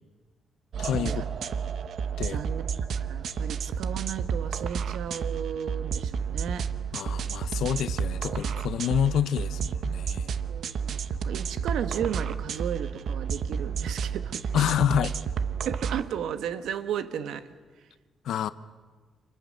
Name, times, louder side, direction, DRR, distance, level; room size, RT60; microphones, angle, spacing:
sound 1, 0.7-16.0, right 6 dB, 55° right, 1.0 m, -31 dB
voice 1, 0.8-1.3 2.2-2.4 6.9-10.3 14.5-15.1 18.2-18.5, left 9 dB, 80° left, 13 dB, 1.0 m, -28 dB
voice 2, 2.3-2.6 3.0-6.7 10.5-14.7 15.6-17.5, right 9 dB, 90° right, 10 dB, 1.4 m, -34 dB
30.0 x 27.0 x 6.6 m, 1.4 s
cardioid pair, 165°, 0 cm